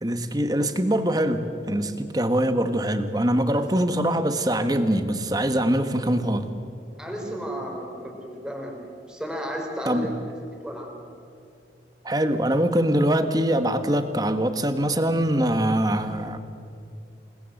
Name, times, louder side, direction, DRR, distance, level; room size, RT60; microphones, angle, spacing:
voice 1, 0.0-6.5 9.8-10.2 12.0-16.4, right 1 dB, 20° right, 9 dB, 1.4 m, -23 dB
voice 2, 7.0-10.1 10.6-11.0, equal, 5° right, 1 dB, 4.1 m, -33 dB
28.0 x 20.5 x 7.9 m, 2.5 s
head